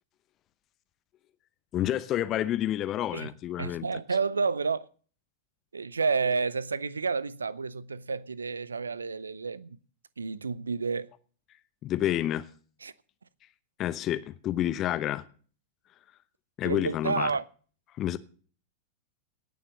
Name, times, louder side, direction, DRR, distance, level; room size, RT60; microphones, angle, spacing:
voice 1, 1.7-3.9 11.8-12.5 13.8-15.2 16.6-17.3 18.0-18.2, left 12 dB, 35° left, 0.8 m, -29 dB
voice 2, 3.6-4.9 5.7-9.8 10.2-11.1 12.8-12.9 16.6-17.4, right 4 dB, 75° right, 0.6 m, -30 dB
18.5 x 7.1 x 6.2 m
figure-of-eight pair, 90°, 0 cm